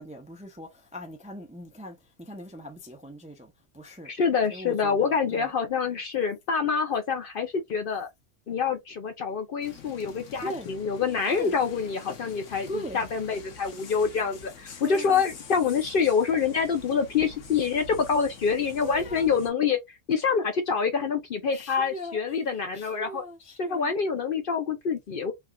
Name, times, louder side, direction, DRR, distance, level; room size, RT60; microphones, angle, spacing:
voice 1, 0.0-4.1 4.5-5.5 10.4-10.7 11.3-11.5 12.7-13.0 14.8-15.2 18.8-19.3 21.5-24.0, equal, 10° right, 0.3 m, -40 dB
voice 2, 4.1-8.1 8.5-12.7 12.9-19.8 20.1-23.2 23.6-25.3, left 6 dB, 55° left, 0.6 m, -26 dB
sound 1, 9.6-19.5, left 4 dB, 85° left, 1.2 m, -46 dB
3.5 x 2.3 x 2.2 m
omnidirectional pair, 1.3 m